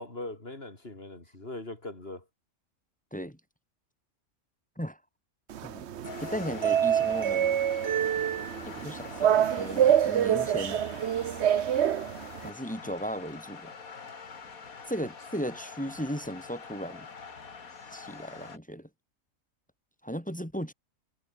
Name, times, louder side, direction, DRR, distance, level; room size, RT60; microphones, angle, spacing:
voice 1, 0.0-2.2, left 2 dB, 45° left, 4.3 m, -40 dB
sound 1, 5.5-12.5, right 10 dB, 60° right, 1.0 m, -26 dB
sound 2, 6.0-18.6, left 5 dB, 85° left, 2.5 m, -45 dB
voice 2, 6.2-7.6 8.6-10.8 12.4-13.7 14.9-17.1 17.9-18.9 20.0-20.7, equal, 5° left, 3.5 m, -36 dB
omnidirectional pair, 1.5 m